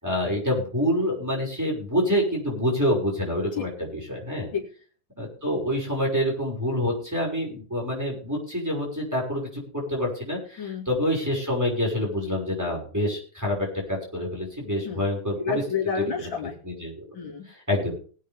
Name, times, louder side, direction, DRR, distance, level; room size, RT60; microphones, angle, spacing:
voice 1, 0.0-4.5 5.2-15.6 16.6-17.0 17.5-17.9, equal, 10° right, -3 dB, 6.1 m, -27 dB
voice 2, 15.4-16.5 17.1-17.4, left 7 dB, 85° left, 0 dB, 3.2 m, -29 dB
20.5 x 8.6 x 3.6 m, 0.41 s
omnidirectional pair, 2.0 m